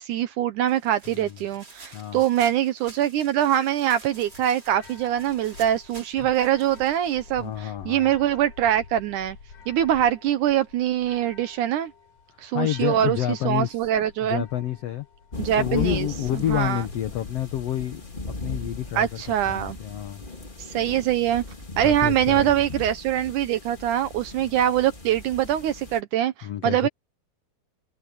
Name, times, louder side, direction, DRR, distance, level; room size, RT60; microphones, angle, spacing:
voice 1, 0.0-9.4 9.7-11.9 12.4-14.4 15.4-16.1 16.5-16.8 19.0-19.8 20.6-21.4 21.8-26.9, right 11 dB, 70° right, 2.0 m, -23 dB
sound 1, 0.7-7.7, right 2 dB, 25° right, 5.4 m, -49 dB
voice 2, 1.1-1.4 1.9-2.2 7.4-8.1 12.5-13.8 14.2-15.1 15.6-18.0 18.3-20.2 21.8-22.6 26.4-26.9, left 12 dB, 80° left, 1.4 m, -29 dB
sound 2, 4.1-19.9, left 6 dB, 55° left, 4.5 m, -48 dB
sound 3, 15.3-26.0, left 3 dB, 20° left, 1.6 m, -37 dB
omnidirectional pair, 4.3 m